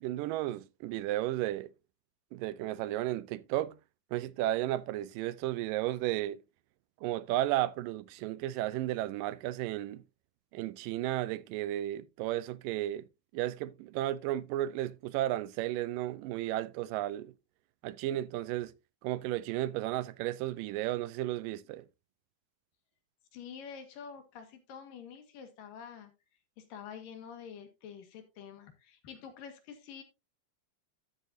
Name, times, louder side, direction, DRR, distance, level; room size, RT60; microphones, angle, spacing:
voice 1, 0.0-1.7 2.3-3.8 4.1-6.4 7.0-10.0 10.5-13.0 13.3-17.3 17.8-18.7 19.0-21.9, right 14 dB, 90° right, 2.3 m, -33 dB
voice 2, 23.3-26.1 26.6-30.0, left 7 dB, 85° left, 3.4 m, -47 dB
12.5 x 7.5 x 2.7 m
omnidirectional pair, 3.8 m